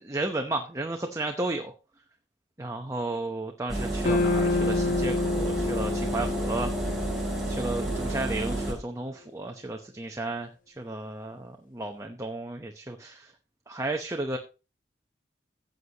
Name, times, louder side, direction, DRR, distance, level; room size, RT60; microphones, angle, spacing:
voice 1, 0.0-1.7 2.6-6.7 7.5-13.3 13.7-14.4, right 2 dB, 15° right, 4 dB, 0.8 m, -33 dB
Engine, 3.7-8.7, right 1 dB, ahead, 4.1 m, -30 dB
sound 1, 4.0-8.4, left 4 dB, 45° left, 0.7 m, -29 dB
15.0 x 8.1 x 2.9 m, 0.31 s
head